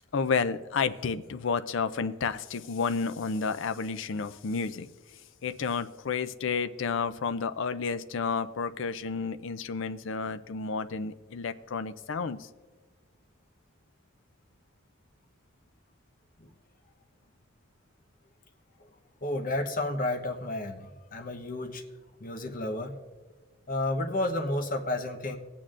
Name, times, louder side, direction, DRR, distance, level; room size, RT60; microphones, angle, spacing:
voice 1, 0.1-4.9 5.4-12.5, left 5 dB, 65° left, 12 dB, 0.4 m, -31 dB
voice 2, 19.2-21.8 22.2-23.0 23.7-25.4, left 2 dB, 40° left, 4 dB, 0.9 m, -31 dB
19.0 x 8.7 x 2.5 m, 1.3 s
head